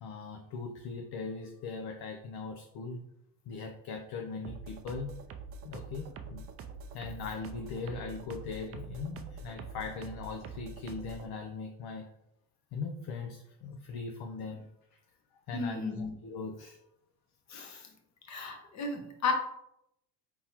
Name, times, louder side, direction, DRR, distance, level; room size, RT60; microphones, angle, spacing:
voice 1, 0.0-3.0 3.5-5.1 5.6-6.4 6.9-12.0 12.7-14.6 14.9-15.0 15.5-16.8, left 4 dB, 55° left, 3 dB, 0.6 m, -40 dB
sound 1, 4.4-11.3, right 4 dB, 30° right, 0.4 m, -45 dB
voice 2, 15.5-16.1 17.5-17.9 18.3-19.3, left 4 dB, 35° left, 3 dB, 1.0 m, -34 dB
4.5 x 3.6 x 2.9 m, 0.80 s
supercardioid pair, 105°, 46 cm